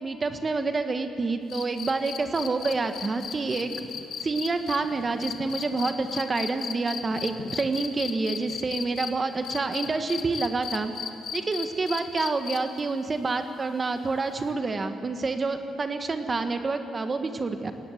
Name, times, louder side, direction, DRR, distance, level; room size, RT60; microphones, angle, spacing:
voice 1, 0.0-3.7 4.2-10.9 11.3-17.7, right 3 dB, 30° right, 7 dB, 1.6 m, -28 dB
sound 1, 1.5-9.1 9.4-12.8 14.4-14.5, left 8 dB, 65° left, 1.6 m, -35 dB
21.5 x 18.0 x 8.1 m, 2.5 s
cardioid pair, 90°, 0 cm